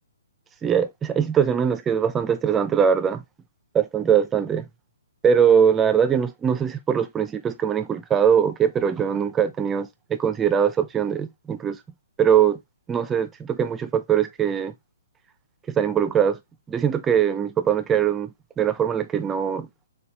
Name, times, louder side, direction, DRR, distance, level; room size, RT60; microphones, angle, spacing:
voice 1, 0.6-3.2 3.7-4.7 5.2-11.8 12.2-12.6 12.9-14.7 15.7-16.4 16.7-19.7, right 8 dB, 15° right, 0.5 m, -21 dB
6.8 x 2.3 x 3.0 m
hypercardioid pair, 140°, 0 cm